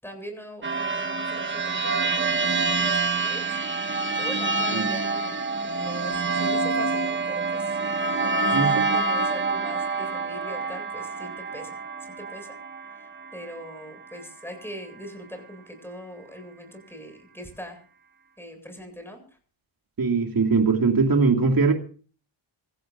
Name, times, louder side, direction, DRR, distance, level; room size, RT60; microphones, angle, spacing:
voice 1, 0.0-3.6 4.1-5.4 5.6-7.8 8.2-11.8 12.2-12.6 12.9-17.8 18.4-19.2, equal, 5° left, 8.0 m, -41 dB
sound 1, 0.6-13.8, right 4 dB, 25° right, 1.3 m, -27 dB
voice 2, 20.0-21.7, right 4 dB, 45° right, 2.5 m, -21 dB
26.0 x 15.5 x 2.7 m
wide cardioid pair, 100°, 50 cm